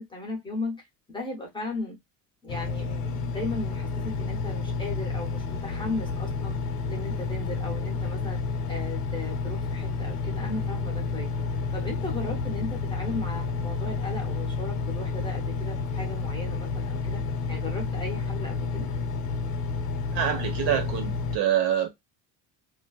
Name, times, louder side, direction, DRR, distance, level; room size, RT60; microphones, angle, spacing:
voice 1, 0.0-2.0 2.4-6.6 6.9-8.4 8.7-11.3 11.7-17.2 17.5-18.9, left 2 dB, 10° left, 0.6 m, -36 dB
Engine, 2.5-21.4, left 4 dB, 80° left, 0.8 m, -30 dB
voice 2, 20.1-21.9, right 10 dB, 65° right, 1.0 m, -26 dB
2.5 x 2.3 x 2.3 m
cardioid pair, 160°, 41 cm